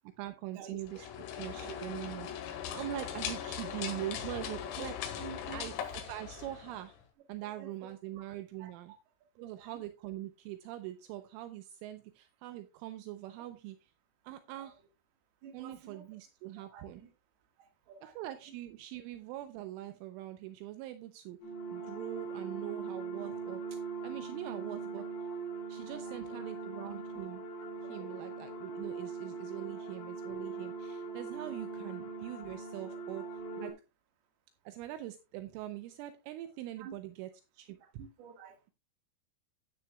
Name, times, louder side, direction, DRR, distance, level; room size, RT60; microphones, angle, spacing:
voice 1, 0.2-1.1 1.4-4.9 5.5-7.0 7.3-8.9 9.4-13.8 14.2-14.8 15.5-17.0 18.2-21.4 21.7-25.1 25.7-27.4 27.8-33.7 34.7-38.0, right 14 dB, 80° right, 9 dB, 3.1 m, -43 dB
sound 1, 0.8-7.0, left 9 dB, 85° left, 4.3 m, -40 dB
voice 2, 1.6-1.9 4.4-4.5 5.2-5.7 7.4-7.9 8.6-8.7 9.4-9.8 14.5-14.7 15.4-16.1 16.7-17.1 17.6-18.2 25.7-26.5 27.9-28.1 32.8-33.0 36.8-36.9 37.8-38.6, right 7 dB, 60° right, 5 dB, 3.1 m, -51 dB
sound 2, 21.4-33.7, right 4 dB, 55° left, 4.5 m, -41 dB
13.0 x 9.7 x 2.3 m, 0.26 s
omnidirectional pair, 6.0 m